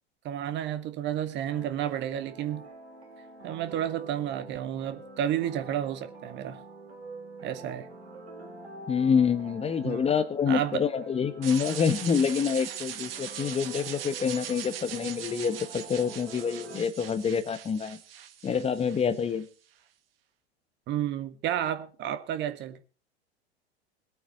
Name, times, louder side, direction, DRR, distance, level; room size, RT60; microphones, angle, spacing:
voice 1, 0.2-2.7 3.4-6.6 7.4-7.9 9.8-10.0 10.5-10.8 20.9-22.8, right 10 dB, 35° right, 1.5 m, -31 dB
sound 1, 1.5-16.8, right 2 dB, 75° right, 4.5 m, -46 dB
voice 2, 8.9-18.0 18.4-19.5, left 6 dB, 20° left, 1.2 m, -27 dB
sound 2, 11.4-19.4, right 10 dB, 60° right, 1.9 m, -40 dB
22.0 x 8.7 x 4.4 m
figure-of-eight pair, 90°, 33 cm